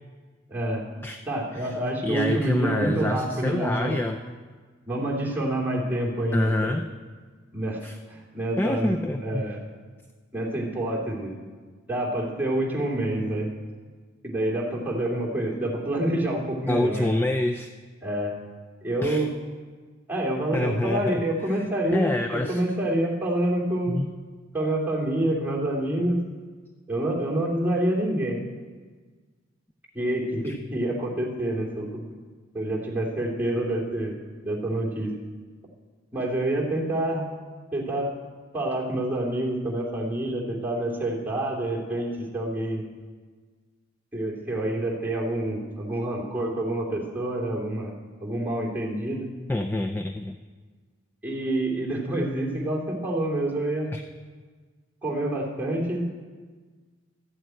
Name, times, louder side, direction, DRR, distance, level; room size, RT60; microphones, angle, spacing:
voice 1, 0.5-0.8 1.3-4.0 4.9-6.8 7.5-9.6 10.3-11.3 11.9-13.5 14.2-17.2 18.0-18.3 18.8-19.3 20.1-23.9 24.5-26.2 26.9-28.4 29.9-32.0 32.5-34.2 34.4-35.1 36.1-37.3 37.7-38.1 38.5-42.8 44.1-47.9 48.2-49.3 51.2-53.9 55.0-56.0, right 1 dB, 10° right, -4 dB, 2.7 m, -27 dB
voice 2, 2.0-4.2 6.3-6.9 7.8-8.0 8.6-9.4 16.7-17.7 19.0-19.3 20.5-21.2 21.9-22.6 23.9-24.1 30.4-30.6 49.5-50.4 53.9-54.0, left 1 dB, 10° left, 5 dB, 0.4 m, -27 dB
13.5 x 7.8 x 9.0 m, 1.5 s
head